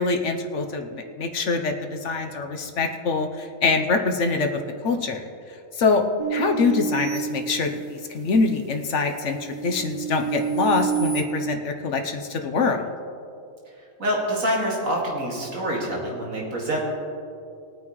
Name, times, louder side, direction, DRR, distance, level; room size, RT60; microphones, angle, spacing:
voice 1, 0.0-5.3 5.7-6.0 6.3-12.9, left 4 dB, 65° left, 5 dB, 1.1 m, -24 dB
sound 1, 6.2-8.1 8.7-11.2, right 6 dB, 20° right, 1.6 m, -29 dB
voice 2, 14.0-16.8, equal, 90° right, -4 dB, 2.6 m, -26 dB
21.0 x 9.3 x 3.1 m, 2.6 s
omnidirectional pair, 1.4 m